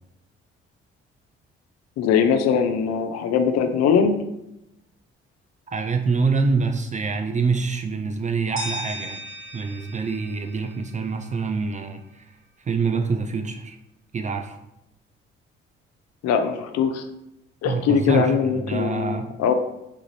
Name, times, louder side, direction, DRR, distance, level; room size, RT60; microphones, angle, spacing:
voice 1, 2.0-4.2 16.2-17.1 17.6-19.5, left 7 dB, 55° left, 8 dB, 0.5 m, -21 dB
voice 2, 5.7-9.2 9.5-12.3 12.6-13.8 14.1-14.6 17.6-19.3, right 4 dB, 25° right, 6 dB, 0.3 m, -25 dB
sound 1, 8.6-11.5, equal, 45° right, 1.0 m, -37 dB
3.6 x 2.5 x 3.1 m, 0.86 s
hypercardioid pair, 40°, 31 cm